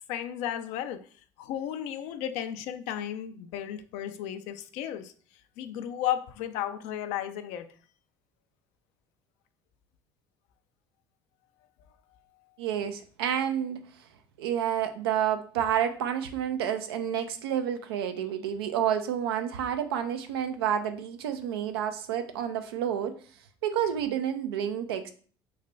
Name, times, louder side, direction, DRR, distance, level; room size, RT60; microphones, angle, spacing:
voice 1, 0.1-1.1 1.4-5.1 5.6-7.7, left 10 dB, 70° left, 0.4 m, -34 dB
voice 2, 12.6-13.8 14.4-23.2 23.6-25.1, right 9 dB, 85° right, 0.4 m, -29 dB
3.2 x 2.2 x 3.8 m
hypercardioid pair, 70°, 13 cm